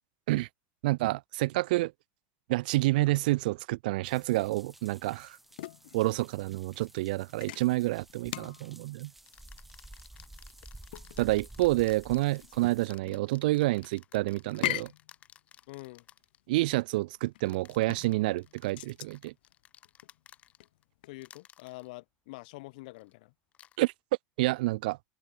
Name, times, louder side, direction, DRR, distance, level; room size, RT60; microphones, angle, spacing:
voice 1, 0.8-1.9 2.5-5.4 5.9-9.1 11.2-14.9 16.5-19.3 23.8-23.9 24.4-25.0, right 19 dB, 70° right, 0.4 m, -28 dB
sound 1, 4.0-12.9, right 1 dB, 5° right, 3.5 m, -52 dB
sound 2, 4.7-21.3, left 16 dB, 80° left, 1.8 m, -42 dB
sound 3, 8.2-8.4 9.3-16.4 17.4-20.8 21.2-21.9 22.9-23.1 23.5-23.8, left 10 dB, 25° left, 4.7 m, -57 dB
voice 2, 15.7-16.1 21.1-23.3, left 23 dB, 60° left, 1.7 m, -46 dB
open air
supercardioid pair, 160°, 5 cm